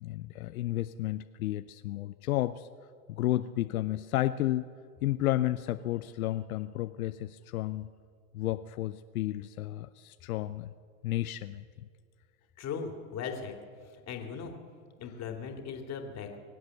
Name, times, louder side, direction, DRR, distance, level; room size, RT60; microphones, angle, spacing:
voice 1, 0.0-2.7 3.1-4.7 5.0-7.9 8.3-10.7 11.0-11.6, left 15 dB, 85° left, 11 dB, 0.6 m, -32 dB
voice 2, 12.6-13.6 13.8-14.5 15.0-16.4, left 6 dB, 40° left, 4 dB, 2.7 m, -38 dB
23.5 x 8.1 x 7.6 m, 2.1 s
hypercardioid pair, 100°, 41 cm